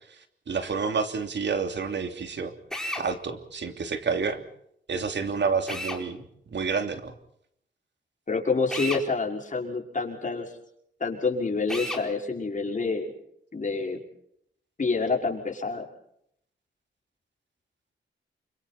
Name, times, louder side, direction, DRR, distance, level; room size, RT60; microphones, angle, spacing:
voice 1, 0.5-2.5 3.0-4.4 4.9-6.2 6.5-7.1, right 5 dB, 65° right, 6 dB, 3.1 m, -29 dB
Drill, 2.7-3.1 5.7-6.0 8.7-9.0 11.7-12.0, left 1 dB, 5° left, 4.5 m, -32 dB
voice 2, 8.3-10.5 11.0-13.1 13.5-14.0 14.8-15.9, left 4 dB, 40° left, 1 dB, 5.7 m, -27 dB
29.0 x 26.0 x 4.3 m, 0.72 s
wide cardioid pair, 100°, 20 cm